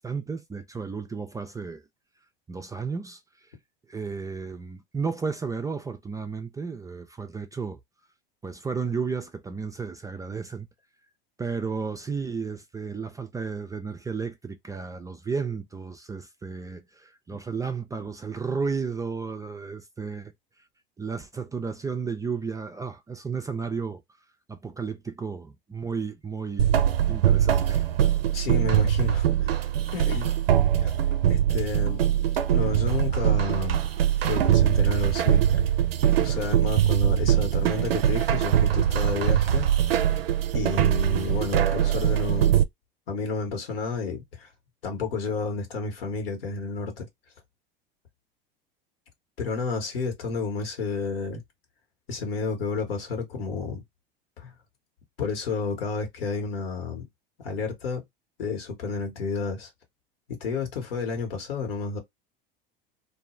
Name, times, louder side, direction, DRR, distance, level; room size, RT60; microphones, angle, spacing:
voice 1, 0.0-1.8 2.5-3.2 3.9-7.8 8.4-10.7 11.4-20.3 21.0-24.0 24.5-26.7 27.1-28.1, right 5 dB, 10° right, 0.3 m, -33 dB
sound 1, 26.6-42.6, right 10 dB, 90° right, 0.4 m, -22 dB
voice 2, 28.3-29.6 29.9-30.3 30.8-31.0 31.3-32.0 32.5-33.8 34.2-35.4 36.2-39.7 40.1-40.2 40.5-42.6 43.1-44.5 44.8-47.1 49.4-51.4 52.1-53.8 54.4-54.5 55.2-57.0 57.4-58.0 58.4-59.7 60.3-62.0, left 4 dB, 80° left, 1.4 m, -31 dB
2.6 x 2.3 x 3.1 m
hypercardioid pair, 85°, 29 cm